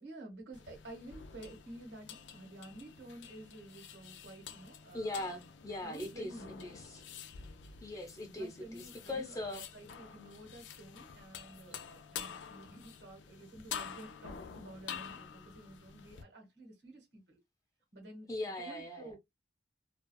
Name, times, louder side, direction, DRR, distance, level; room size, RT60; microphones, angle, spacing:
voice 1, 0.0-5.2 5.8-6.7 8.2-17.4 17.9-18.3 18.6-19.2, right 1 dB, 70° right, 1.3 m, -51 dB
sound 1, 0.5-16.2, left 7 dB, 85° left, 0.4 m, -48 dB
voice 2, 4.9-6.3 6.6-7.0 7.8-9.7 18.3-19.1, left 2 dB, 20° left, 0.8 m, -40 dB
2.4 x 2.3 x 2.2 m
head